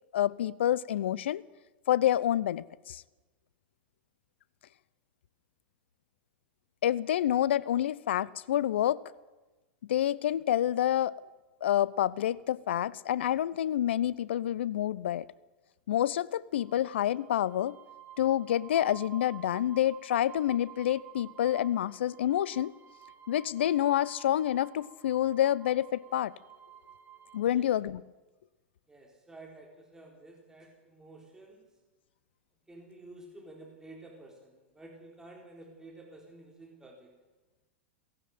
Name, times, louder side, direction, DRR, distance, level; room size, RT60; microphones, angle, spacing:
voice 1, 0.1-1.4 1.9-3.0 6.8-9.0 9.9-11.2 11.6-15.3 15.9-17.8 18.2-22.7 23.3-26.3 27.3-28.0, left 11 dB, 70° left, 0.7 m, -28 dB
sound 1, 16.5-27.4, right 11 dB, 35° right, 3.5 m, -52 dB
voice 2, 28.9-31.7 32.7-37.1, right 2 dB, 10° right, 4.0 m, -51 dB
17.5 x 16.5 x 9.4 m
hypercardioid pair, 100°, 6 cm